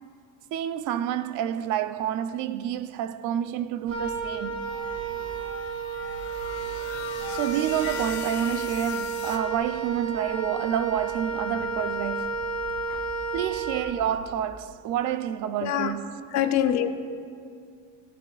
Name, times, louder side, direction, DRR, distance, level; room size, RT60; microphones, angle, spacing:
voice 1, 0.5-4.6 7.3-12.4 13.3-16.2, right 10 dB, 60° right, 0.6 m, -29 dB
Wind instrument woodwind instrument, 3.9-14.3, right 4 dB, 35° right, 2.6 m, -32 dB
sound 1, 4.6-9.4, left 7 dB, 90° left, 1.9 m, -40 dB
voice 2, 15.6-16.0 16.3-16.9, left 10 dB, 50° left, 0.7 m, -25 dB
22.5 x 15.5 x 2.4 m
cardioid pair, 165°, 34 cm